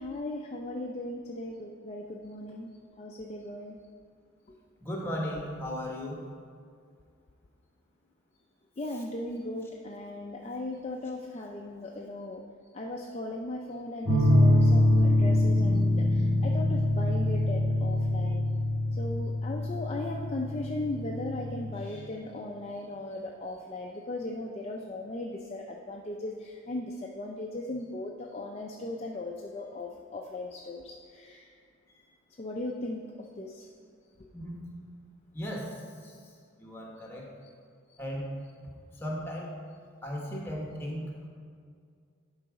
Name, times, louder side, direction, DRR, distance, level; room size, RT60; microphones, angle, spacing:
voice 1, 0.0-2.7 3.0-3.8 4.5-4.6 8.8-12.4 12.7-15.9 16.4-18.4 19.0-31.5 32.4-33.7 37.4-37.5, left 2 dB, 30° left, 0 dB, 0.4 m, -37 dB
voice 2, 4.8-6.2 15.5-16.5 34.3-34.6 35.3-35.7 36.0-36.2 36.6-37.3 38.0-38.3 39.0-39.5 40.0-41.0, left 1 dB, 10° left, -2 dB, 1.1 m, -36 dB
sound 1, 14.0-21.7, left 1 dB, 15° right, 1.8 m, -25 dB
11.0 x 4.0 x 4.7 m, 2.2 s
head